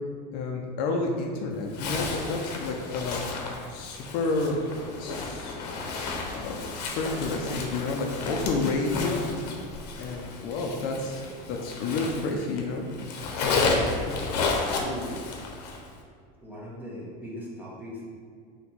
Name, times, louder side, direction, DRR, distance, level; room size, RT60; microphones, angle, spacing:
voice 1, 0.3-3.2 3.7-5.6 6.3-9.3 10.0-12.9, left 3 dB, 50° left, 1 dB, 0.5 m, -30 dB
Zipper (clothing), 1.7-12.6 12.9-15.9, left 3 dB, 90° left, 0.8 m, -32 dB
voice 2, 14.7-15.2 16.4-18.1, equal, 10° right, -6 dB, 1.0 m, -38 dB
4.1 x 3.0 x 4.3 m, 2.1 s
supercardioid pair, 150°, 20 cm